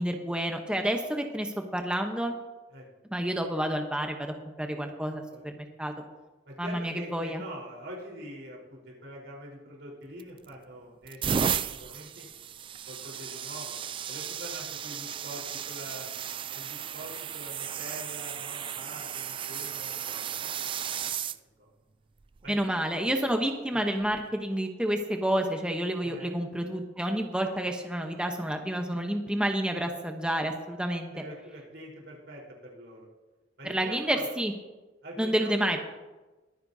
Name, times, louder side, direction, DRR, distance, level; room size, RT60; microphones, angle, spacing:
voice 1, 0.0-2.4 3.1-5.9 6.6-7.4 22.5-31.1 33.6-34.5 35.2-35.8, right 1 dB, 5° right, 3 dB, 0.9 m, -29 dB
voice 2, 6.5-12.3 12.9-13.7 14.1-16.1 16.5-20.6 20.9-21.3 21.6-21.7 22.4-22.8 23.7-23.8 26.0-26.3 31.1-33.1 33.6-34.3 35.0-35.5, right 1 dB, 85° right, -2 dB, 4.1 m, -44 dB
sound 1, 10.2-10.5 11.0-21.4 22.2-22.5 24.0-24.2, right 8 dB, 30° right, 0.3 m, -34 dB
22.0 x 9.6 x 2.7 m, 1.2 s
head